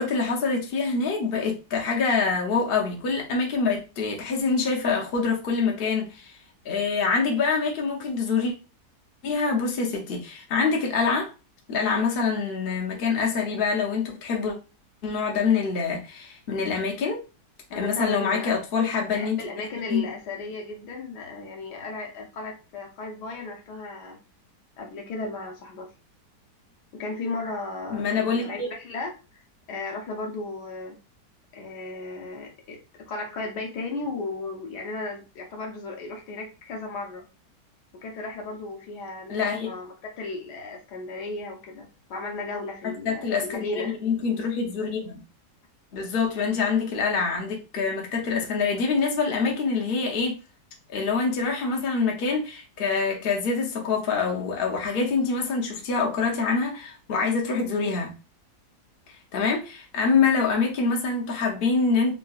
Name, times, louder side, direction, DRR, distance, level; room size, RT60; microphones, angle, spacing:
voice 1, 0.0-6.3 6.6-8.5 9.2-11.3 11.7-14.5 15.0-17.2 17.7-19.4 19.9-20.0 27.9-28.7 39.3-39.7 43.0-45.2 45.9-50.3 50.9-58.1 59.3-62.1, left 4 dB, 50° left, 0.7 m, -25 dB
voice 2, 17.7-18.5 19.1-24.2 24.8-25.9 26.9-29.4 29.7-31.0 31.5-37.3 37.9-44.0, left 3 dB, 70° left, 1.3 m, -35 dB
3.8 x 2.4 x 2.3 m
omnidirectional pair, 1.9 m